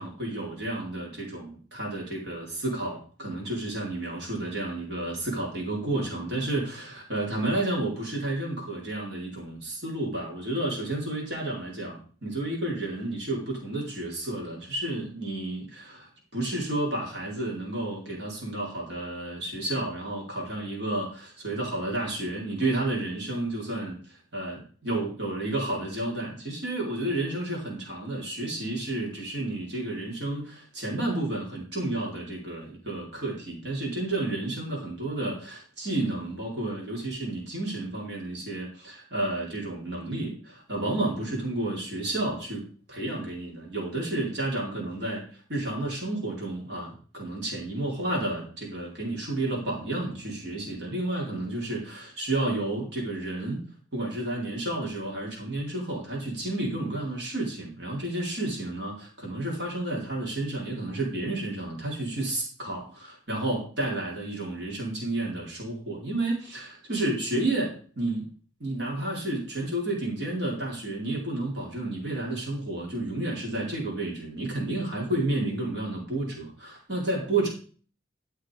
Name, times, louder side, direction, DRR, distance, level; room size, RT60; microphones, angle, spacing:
voice 1, 0.0-45.2 45.5-53.6 53.9-68.3 68.6-77.5, right 2 dB, 70° right, -2 dB, 4.1 m, -31 dB
13.5 x 5.6 x 5.0 m, 0.40 s
head